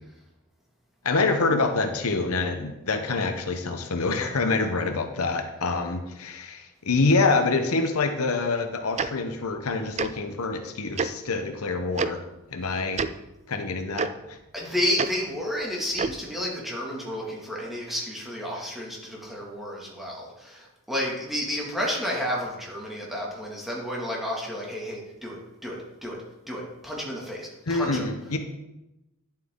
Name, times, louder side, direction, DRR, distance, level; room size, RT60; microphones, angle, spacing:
voice 1, 1.0-12.2 12.5-13.0 13.5-14.4 27.7-28.4, left 3 dB, 75° left, 6 dB, 0.9 m, -26 dB
Tick-tock, 9.0-9.1 10.0-10.1 11.0-11.1 12.0-12.1 12.9-13.1 14.0-14.1 15.0-15.1 15.9-16.2, right 5 dB, 30° right, 0.4 m, -26 dB
voice 2, 14.5-25.4 25.6-26.2 26.5-28.1, equal, ahead, -4 dB, 2.1 m, -31 dB
10.5 x 7.5 x 3.8 m, 0.95 s
head